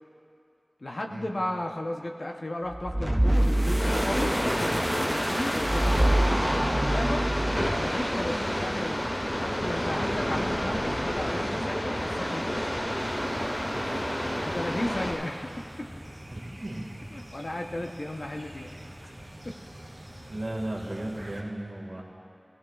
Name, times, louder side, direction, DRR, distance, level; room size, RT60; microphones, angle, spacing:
voice 1, 0.8-7.3 7.8-12.7 14.5-15.9 17.1-18.7 19.0-19.1 19.4-19.6, left 1 dB, 90° left, 2 dB, 0.8 m, -35 dB
sound 1, 2.7-8.0, right 1 dB, 20° right, 0.5 m, -26 dB
sound 2, 3.8-15.1, equal, 55° left, 2.1 m, -29 dB
sound 3, 13.0-21.4, equal, 45° right, 1.9 m, -45 dB
voice 2, 13.7-14.1 16.3-16.9 20.3-22.0, right 1 dB, 80° right, -1 dB, 1.9 m, -35 dB
17.0 x 16.5 x 2.4 m, 2.6 s
wide cardioid pair, 40°, 0 cm